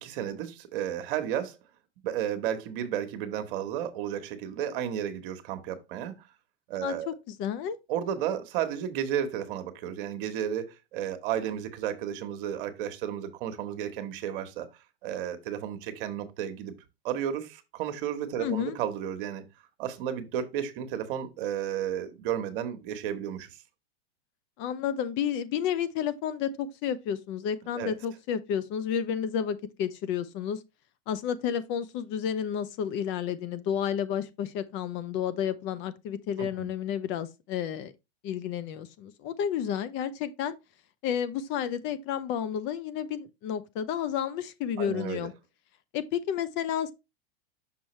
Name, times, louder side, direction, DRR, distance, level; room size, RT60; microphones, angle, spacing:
voice 1, 0.0-1.6 2.0-6.3 6.7-7.1 7.9-14.7 15.0-16.7 17.0-19.4 19.8-23.6 27.7-27.9 36.4-36.7 44.8-45.3, right 10 dB, 55° right, 1.3 m, -33 dB
voice 2, 6.8-7.8 18.4-18.7 24.6-30.6 31.1-37.9 38.2-40.5 41.0-45.3 45.9-46.9, left 8 dB, 40° left, 0.6 m, -31 dB
6.0 x 5.5 x 3.1 m
hypercardioid pair, 125°, 31 cm